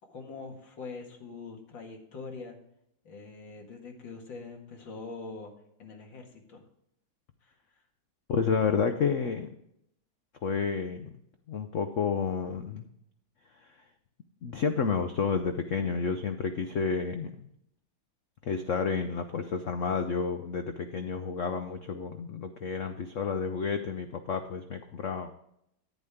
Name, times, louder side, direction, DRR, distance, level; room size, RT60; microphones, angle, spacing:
voice 1, 0.0-2.6 3.0-5.5 5.8-6.6 7.4-7.9, left 4 dB, 65° left, 2 dB, 2.5 m, -43 dB
voice 2, 8.3-9.5 10.4-11.1 11.5-12.8 13.6-13.7 14.4-17.5 18.4-25.3, left 5 dB, 85° left, 7 dB, 0.6 m, -30 dB
10.5 x 10.0 x 3.6 m, 0.75 s
omnidirectional pair, 2.3 m